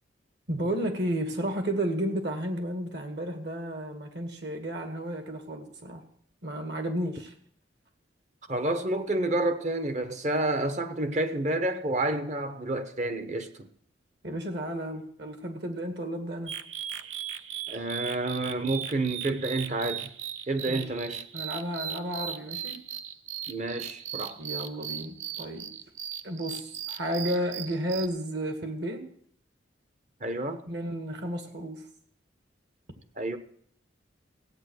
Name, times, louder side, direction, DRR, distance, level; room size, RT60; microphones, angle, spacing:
voice 1, 0.5-6.0 6.4-7.3 14.2-16.5 20.7-20.8 21.3-22.8 24.4-25.7 26.2-29.1 30.7-31.8, right 1 dB, 60° right, 2.2 m, -32 dB
voice 2, 8.5-13.7 17.7-20.1 20.5-21.2 23.5-24.4 30.2-30.6 33.2-33.4, right 2 dB, 35° right, 1.0 m, -29 dB
sound 1, 16.5-28.1, right 9 dB, 90° right, 0.8 m, -38 dB
16.0 x 8.7 x 6.5 m
head